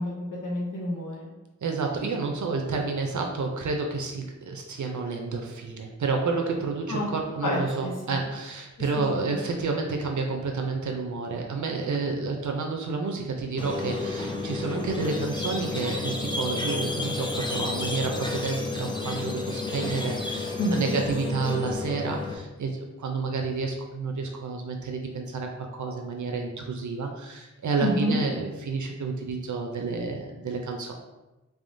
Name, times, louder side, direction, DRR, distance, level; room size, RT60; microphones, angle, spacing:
voice 1, 0.0-1.3 6.9-7.1 7.4-8.2 8.9-9.3 20.6-21.0 27.8-28.2, left 1 dB, 80° left, -3 dB, 0.8 m, -29 dB
voice 2, 1.6-30.9, right 4 dB, 70° right, 2 dB, 0.5 m, -30 dB
Squeak, 13.6-22.3, left 3 dB, 15° left, 0.5 m, -31 dB
3.6 x 3.5 x 2.6 m, 1.0 s
wide cardioid pair, 65°, 31 cm